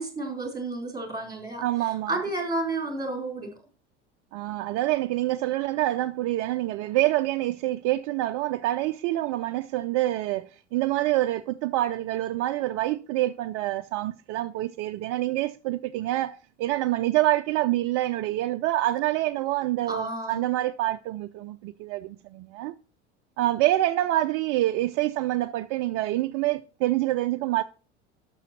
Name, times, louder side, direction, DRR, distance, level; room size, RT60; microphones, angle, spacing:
voice 1, 0.0-1.6 2.1-3.5 19.9-20.4, right 2 dB, 10° right, 4.3 m, -31 dB
voice 2, 1.6-2.2 4.3-22.7 23.4-27.6, right 16 dB, 45° right, 0.5 m, -26 dB
12.5 x 6.3 x 4.4 m
figure-of-eight pair, 70°, 35 cm